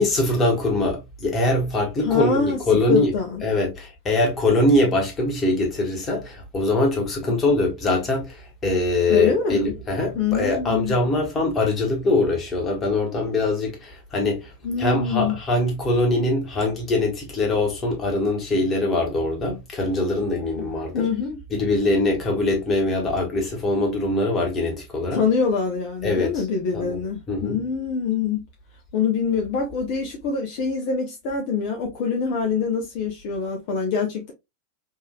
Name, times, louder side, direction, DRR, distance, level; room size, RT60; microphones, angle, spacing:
voice 1, 0.0-3.1 3.4-8.4 8.6-14.5 14.8-21.1 21.5-25.2 26.0-26.3 26.7-27.0 27.3-27.6, left 2 dB, 25° left, 1.6 m, -22 dB
voice 2, 2.0-3.4 9.1-9.7 10.1-11.0 14.6-15.4 20.6-20.7 20.9-21.4 25.1-28.4 28.9-34.3, left 5 dB, 55° left, 0.8 m, -25 dB
3.7 x 2.7 x 2.3 m
figure-of-eight pair, 95°, 0 cm